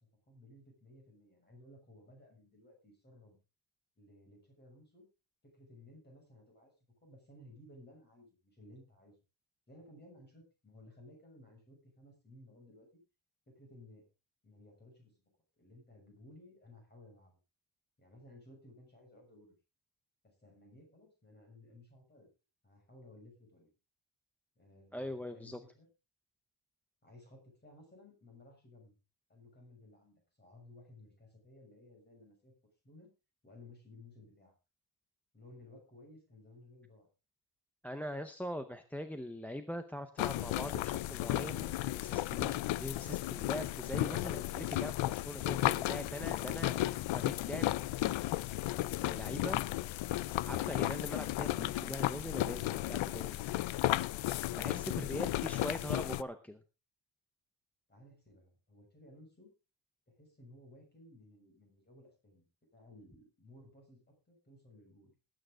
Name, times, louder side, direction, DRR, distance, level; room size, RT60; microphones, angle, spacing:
voice 1, 0.3-3.4 4.0-5.1 5.4-6.7 7.0-9.1 9.7-13.0 13.5-14.0 14.4-15.3 15.6-17.4 18.0-19.5 20.2-22.3 22.6-23.7 24.5-25.9 27.0-28.9 29.3-32.5 32.8-33.1 33.4-34.5 35.3-37.1 55.4-56.0 57.9-59.5 60.2-62.5 62.7-65.1, left 1 dB, 20° left, 1 dB, 6.7 m, -58 dB
voice 2, 24.9-25.6 37.8-46.7 47.1-47.7 49.0-49.7 50.4-53.4 54.5-56.6, equal, 5° left, 7 dB, 0.6 m, -42 dB
sound 1, 40.2-56.2, left 16 dB, 75° left, 0.6 m, -34 dB
19.0 x 9.2 x 3.8 m, 0.30 s
cardioid pair, 175°, 48 cm